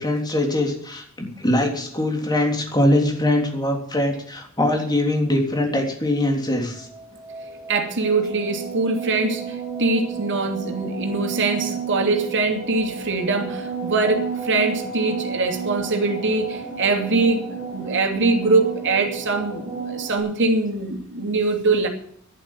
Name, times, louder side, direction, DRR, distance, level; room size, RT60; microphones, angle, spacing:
voice 1, 0.0-6.9, left 1 dB, 20° left, 3.4 m, -22 dB
sound 1, 6.8-20.2, right 5 dB, 10° right, 6.9 m, -32 dB
voice 2, 7.7-21.9, right 3 dB, 55° right, 2.7 m, -23 dB
11.0 x 11.0 x 9.0 m
head